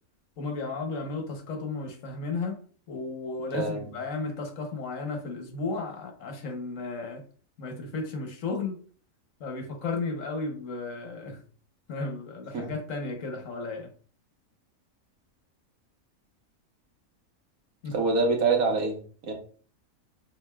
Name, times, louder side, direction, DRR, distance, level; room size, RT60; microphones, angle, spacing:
voice 1, 0.4-2.6 2.9-7.2 7.6-8.8 9.4-11.4 11.9-13.9 17.8-17.9, left 3 dB, 70° left, 4 dB, 1.3 m, -34 dB
voice 2, 3.5-3.9 12.5-12.7 17.9-19.3, right 4 dB, 90° right, 1 dB, 1.5 m, -26 dB
5.3 x 3.6 x 2.3 m, 0.43 s
omnidirectional pair, 1.5 m